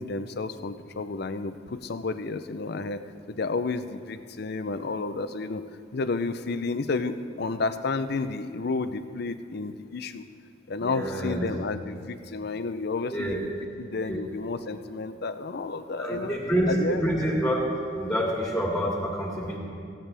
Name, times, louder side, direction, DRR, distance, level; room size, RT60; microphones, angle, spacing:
voice 1, 0.0-3.0 3.3-5.6 5.9-10.3 10.7-13.5 13.8-16.3 16.7-17.1, left 3 dB, 60° left, 10 dB, 0.6 m, -31 dB
voice 2, 10.8-11.5 13.1-13.4 14.1-14.2 16.0-17.6 17.9-19.6, equal, 5° left, -3 dB, 2.4 m, -27 dB
16.5 x 16.0 x 3.4 m, 2.4 s
head